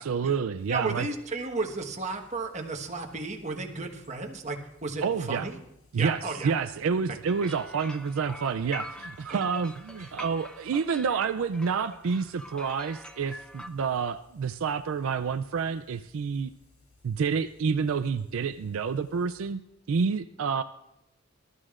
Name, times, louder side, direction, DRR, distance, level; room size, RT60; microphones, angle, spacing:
voice 1, 0.0-1.1 5.0-5.5 5.9-16.5 17.0-19.6 19.9-20.6, right 5 dB, 70° right, 8 dB, 0.4 m, -28 dB
sound 1, 0.6-19.5, left 3 dB, 80° left, 3.8 m, -62 dB
voice 2, 0.7-5.6 5.9-6.5 7.4-7.5 9.3-9.4 10.0-10.1, right 3 dB, 35° right, 1 dB, 1.4 m, -34 dB
sound 2, 7.2-13.7, left 1 dB, 5° left, 0.6 m, -44 dB
25.5 x 12.5 x 2.5 m, 0.85 s
head